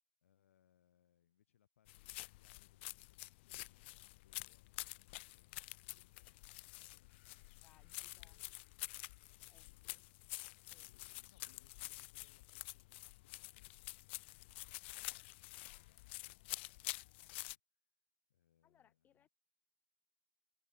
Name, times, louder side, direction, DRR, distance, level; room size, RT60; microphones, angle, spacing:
voice 1, 0.2-8.9 9.5-9.8 10.8-17.6 18.3-19.3, left 10 dB, 85° left, 6.2 m, -76 dB
sound 1, 1.9-17.5, left 22 dB, 60° left, 1.1 m, -49 dB
voice 2, 7.6-8.4 9.5-10.0 10.7-10.9 18.6-19.3, left 9 dB, 25° left, 1.7 m, -72 dB
hypercardioid pair, 120°, 7 cm